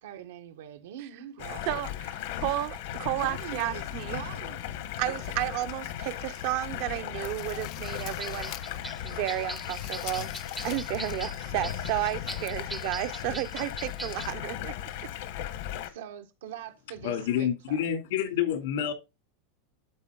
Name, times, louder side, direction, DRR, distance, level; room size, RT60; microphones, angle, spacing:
voice 1, 0.0-1.6 3.2-3.8 4.1-4.6 15.8-17.8, right 11 dB, 85° right, 1.4 m, -43 dB
Stream, 1.4-15.9, left 11 dB, 65° left, 1.3 m, -37 dB
voice 2, 1.7-4.2 5.0-8.5 9.0-10.3 10.6-14.7, right 16 dB, 50° right, 0.6 m, -32 dB
sound 1, 5.4-6.4 6.8-8.9 9.1-11.3 11.6-11.7 12.5-12.6, left 15 dB, 45° left, 0.6 m, -45 dB
sound 2, 7.8-14.3, right 1 dB, ahead, 0.6 m, -42 dB
voice 3, 17.0-18.9, left 9 dB, 80° left, 2.8 m, -28 dB
12.0 x 4.5 x 3.9 m
supercardioid pair, 160°, 0 cm